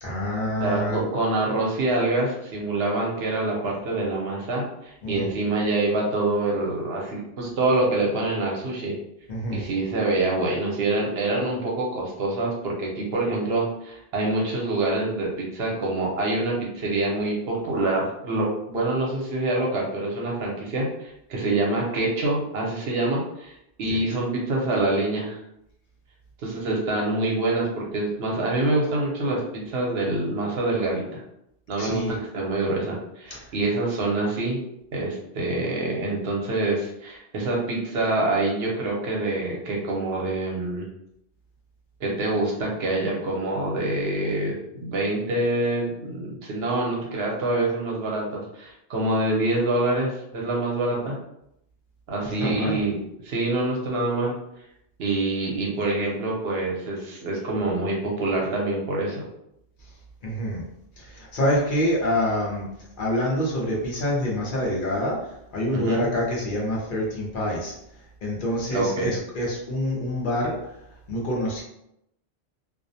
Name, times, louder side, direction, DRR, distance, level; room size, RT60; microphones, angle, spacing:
voice 1, 0.0-1.0 5.0-5.3 9.3-9.6 23.9-24.0 31.8-32.2 33.3-33.5 52.4-52.8 60.2-60.6 61.0-62.6 63.0-67.8 68.2-70.6 71.1-71.6, equal, 55° left, -3 dB, 0.8 m, -26 dB
voice 2, 0.6-9.0 9.5-23.5 23.8-25.4 26.4-31.2 31.7-34.6 34.9-40.9 42.0-51.2 52.1-53.0 53.2-54.3 55.0-59.2 65.7-66.1 68.7-69.1, right 2 dB, 75° right, -2 dB, 0.9 m, -26 dB
2.4 x 2.0 x 2.6 m, 0.79 s
omnidirectional pair, 1.1 m